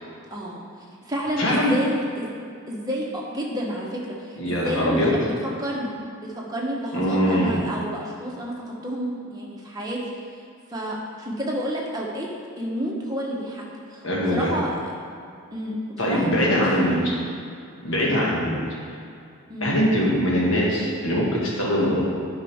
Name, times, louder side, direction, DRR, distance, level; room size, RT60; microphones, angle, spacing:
voice 1, 0.3-0.6 1.0-2.3 2.7-5.3 5.6-6.0 6.5-10.0 10.3-10.4 10.7-12.3 12.6-13.6 13.9-14.9 15.5-17.3 18.0-18.2 19.5-19.8 21.8-22.0, equal, 20° right, -3 dB, 1.1 m, -30 dB
voice 2, 1.4-1.7 4.4-5.1 6.9-7.6 14.0-14.5 16.0-17.0 17.8-18.6 19.6-22.0, equal, 65° left, -5 dB, 1.8 m, -22 dB
10.0 x 5.3 x 3.6 m, 2.4 s
head